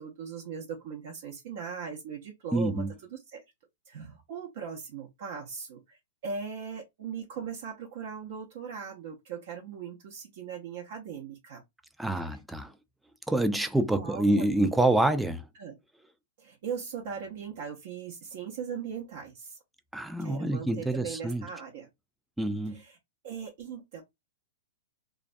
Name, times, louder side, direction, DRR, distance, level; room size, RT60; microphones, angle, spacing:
voice 1, 0.0-2.8 3.3-3.4 3.9-11.6 13.9-14.7 15.6-15.8 16.4-19.6 20.2-21.9 22.7-23.0 23.2-24.0, right 6 dB, 60° right, 0.6 m, -39 dB
voice 2, 2.5-2.9 12.0-12.7 13.3-15.5 19.9-21.5 22.4-22.8, right 1 dB, 5° right, 0.3 m, -27 dB
2.2 x 2.1 x 2.5 m
hypercardioid pair, 125°, 0 cm